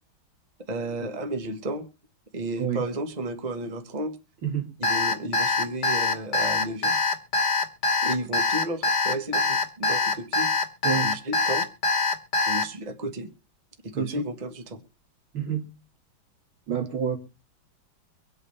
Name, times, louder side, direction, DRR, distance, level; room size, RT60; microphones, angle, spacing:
voice 1, 0.7-1.9 2.3-4.1 4.8-7.0 8.0-10.5 11.0-11.7 12.5-13.3 13.8-14.8, right 1 dB, 25° right, 6 dB, 1.3 m, -33 dB
Alarm, 4.8-12.6, left 3 dB, 60° left, 1.9 m, -23 dB
voice 2, 13.9-14.2 15.3-15.7 16.7-17.2, right 8 dB, 85° right, 3 dB, 3.0 m, -28 dB
24.5 x 8.8 x 3.3 m, 0.31 s
omnidirectional pair, 2.2 m